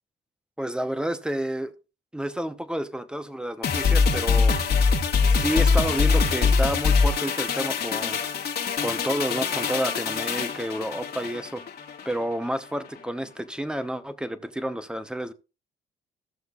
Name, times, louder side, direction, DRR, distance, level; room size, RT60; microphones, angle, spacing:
voice 1, 0.6-1.7 2.1-4.6 5.3-8.2 8.8-11.6 12.0-15.3, equal, 5° right, 1.0 m, -30 dB
sound 1, 3.6-12.2 12.5-12.6, left 5 dB, 50° left, 1.8 m, -23 dB
16.5 x 6.5 x 2.5 m
cardioid pair, 90°, 20 cm